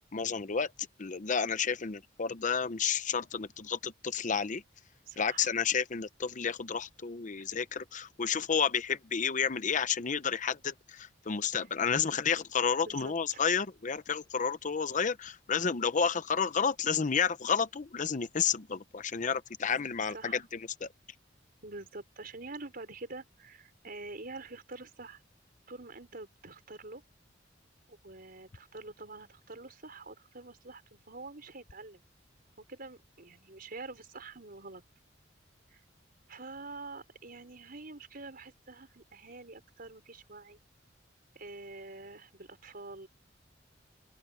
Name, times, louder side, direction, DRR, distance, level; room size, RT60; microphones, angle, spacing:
voice 1, 0.1-0.7 1.0-4.6 5.2-20.9, left 6 dB, 45° left, 0.7 m, -31 dB
voice 2, 5.1-5.5 12.8-13.4 20.1-20.4 21.6-25.2 25.7-27.0 27.9-32.0 32.7-34.8 35.7-35.8 36.3-40.6 41.3-43.1, right 3 dB, 55° right, 4.8 m, -46 dB
open air
head